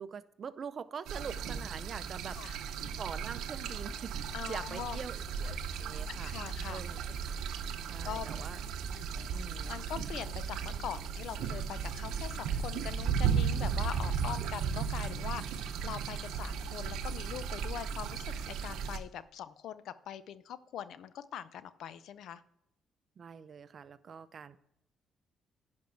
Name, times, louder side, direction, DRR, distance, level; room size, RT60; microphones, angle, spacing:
voice 1, 0.0-2.6 3.0-6.3 6.7-7.0 7.9-8.6 9.3-9.8 23.2-24.6, right 6 dB, 50° right, 15 dB, 0.5 m, -44 dB
sound 1, 1.1-19.0, right 6 dB, 85° right, 0.7 m, -35 dB
voice 2, 4.3-5.0 6.2-6.8 8.0-8.3 9.7-22.4, left 10 dB, 75° left, 15 dB, 0.5 m, -42 dB
10.5 x 5.2 x 4.5 m, 0.79 s
cardioid pair, 90°, 0 cm